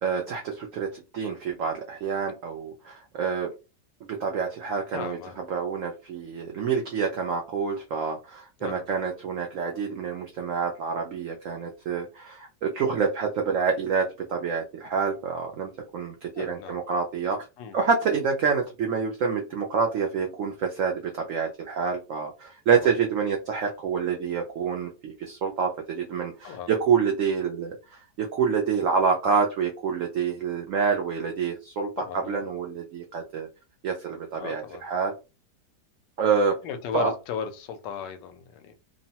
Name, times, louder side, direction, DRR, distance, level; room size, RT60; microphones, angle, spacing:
voice 1, 0.0-3.5 4.1-5.2 5.5-17.4 17.7-31.9 32.3-33.5 33.8-35.1 36.2-36.6 36.9-37.1, right 6 dB, 75° right, 0.7 m, -27 dB
voice 2, 4.9-5.4 8.6-8.9 16.4-16.8 17.6-17.8 22.7-22.9 26.4-26.7 32.0-32.4 34.4-34.8 36.6-38.7, left 7 dB, 85° left, 1.2 m, -36 dB
3.0 x 2.0 x 2.7 m
omnidirectional pair, 1.9 m